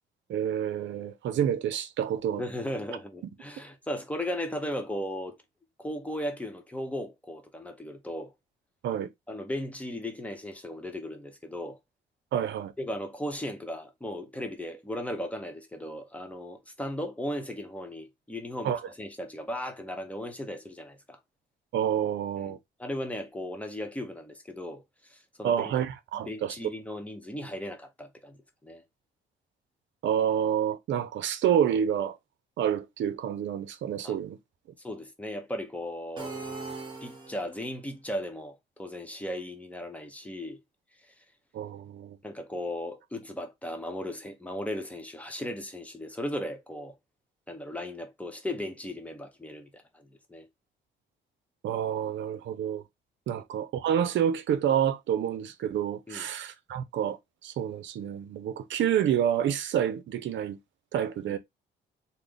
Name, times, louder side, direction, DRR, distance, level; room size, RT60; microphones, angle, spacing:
voice 1, 0.3-2.4 8.8-9.1 12.3-12.7 18.6-18.8 21.7-22.6 25.4-26.6 30.0-32.2 32.6-34.4 41.5-42.2 51.6-52.8 53.3-57.2 57.4-60.6 60.9-61.4, right 9 dB, 70° right, 0.6 m, -28 dB
voice 2, 2.4-5.4 5.8-8.3 9.3-11.8 12.8-21.2 22.5-25.7 26.3-28.8 34.0-34.2 34.8-36.4 37.0-40.6 42.2-46.9 47.5-50.5 56.1-56.3, left 1 dB, 5° left, 1.0 m, -36 dB
sound 1, 36.2-37.7, right 3 dB, 20° right, 1.3 m, -39 dB
3.3 x 2.2 x 3.8 m
cardioid pair, 90°, 20 cm